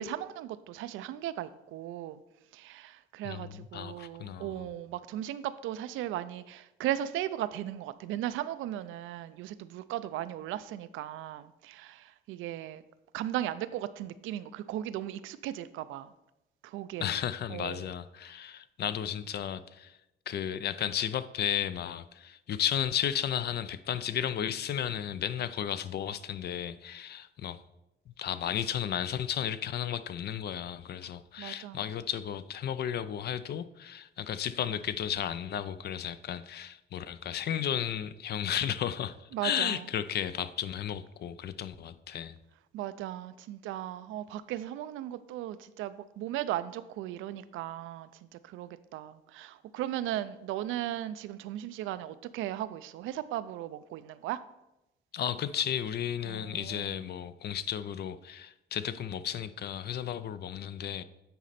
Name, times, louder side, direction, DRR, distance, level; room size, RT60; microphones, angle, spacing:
voice 1, 0.0-2.2 2.5-12.8 13.1-16.1 16.6-17.1 17.5-17.9 31.4-31.8 39.3-39.9 42.7-54.4 56.3-56.9, right 12 dB, 90° right, 14 dB, 0.4 m, -37 dB
voice 2, 3.2-4.7 17.0-20.0 20.3-27.6 28.2-42.4 55.1-61.0, left 9 dB, 55° left, 14 dB, 0.4 m, -34 dB
9.2 x 4.1 x 4.1 m, 0.92 s
cardioid pair, 90°, 20 cm